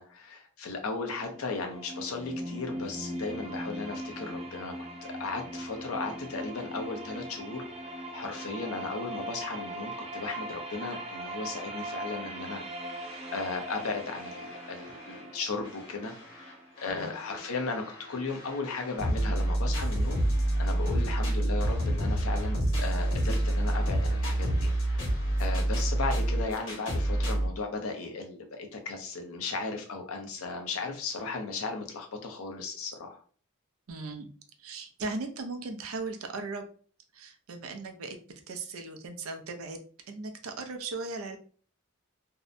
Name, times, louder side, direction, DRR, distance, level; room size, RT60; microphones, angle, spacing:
voice 1, 0.0-4.7 5.0-7.6 8.1-13.1 13.3-20.2 20.6-33.2, left 3 dB, 85° left, 4 dB, 0.6 m, -36 dB
sound 1, 1.2-17.1, right 1 dB, 30° right, 0.4 m, -40 dB
sound 2, 13.0-15.2 15.6-27.5, right 1 dB, 65° left, 1.2 m, -29 dB
voice 2, 33.9-34.3 34.6-36.7 37.1-38.2 38.5-41.4, right 3 dB, 85° right, 5 dB, 0.5 m, -38 dB
2.6 x 2.1 x 2.5 m, 0.42 s
head